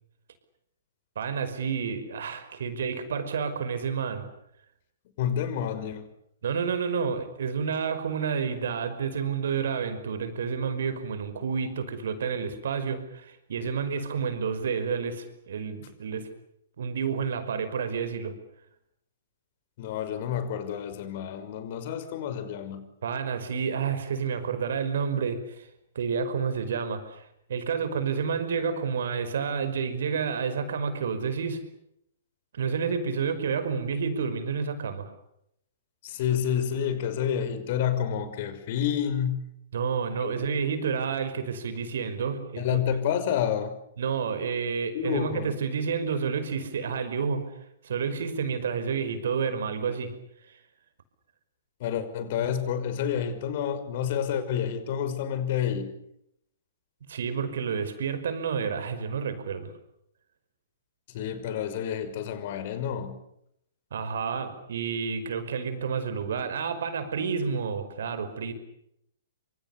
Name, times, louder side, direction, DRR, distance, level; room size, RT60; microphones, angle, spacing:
voice 1, 1.2-4.2 6.4-16.3 16.8-18.4 23.0-25.7 26.0-31.6 32.5-35.1 39.7-42.8 44.0-47.4 47.8-50.1 50.5-50.6 57.1-59.7 63.9-68.5, right 6 dB, 55° right, 11 dB, 5.3 m, -30 dB
voice 2, 5.2-6.1 19.8-22.8 36.0-39.4 40.2-40.4 42.6-43.7 44.9-45.5 51.8-55.9 61.1-63.2, left 9 dB, 45° left, 11 dB, 5.8 m, -29 dB
28.5 x 26.5 x 6.9 m, 0.76 s
figure-of-eight pair, 115°, 0 cm